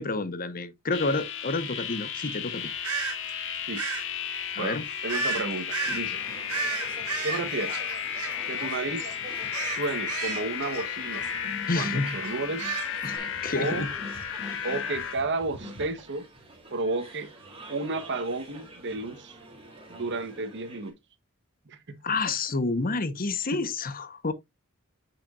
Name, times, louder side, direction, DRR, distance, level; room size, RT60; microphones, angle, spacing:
voice 1, 0.0-2.7 4.5-4.8 11.7-12.2 13.0-13.2 13.4-13.9 14.5-14.6 22.0-24.3, left 3 dB, 40° left, 1.0 m, -29 dB
sound 1, 0.9-15.1, left 8 dB, 60° left, 1.7 m, -34 dB
sound 2, 2.8-3.2 3.8-4.0 5.1-5.4 5.7-6.0 6.5-8.7 9.0-9.2 9.5-11.4 11.7-11.9 12.2-13.2, right 5 dB, 80° right, 1.7 m, -32 dB
voice 2, 5.0-6.2 7.2-7.8 8.5-9.2 9.8-11.3 11.7-12.8 13.5-13.9 14.6-16.3 16.7-17.3 17.7-19.4 19.9-21.0 21.7-22.0 23.5-23.6, right 3 dB, 55° right, 1.1 m, -32 dB
sound 3, 5.8-20.9, right 1 dB, 25° right, 2.7 m, -45 dB
8.3 x 5.8 x 2.4 m
head